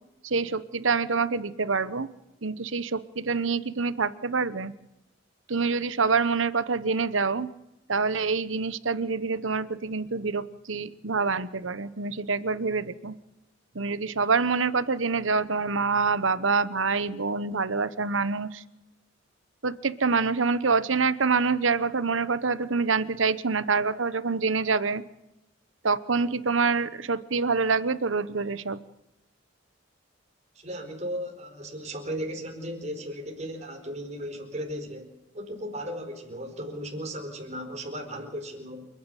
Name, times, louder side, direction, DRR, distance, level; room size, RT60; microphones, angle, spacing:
voice 1, 0.2-2.1 2.4-4.7 5.5-7.5 7.9-13.1 13.7-18.6 19.6-25.0 25.8-28.8, right 4 dB, 80° right, 15 dB, 1.0 m, -26 dB
voice 2, 30.5-38.8, equal, 35° right, 3 dB, 4.6 m, -36 dB
29.0 x 10.5 x 9.1 m, 0.96 s
head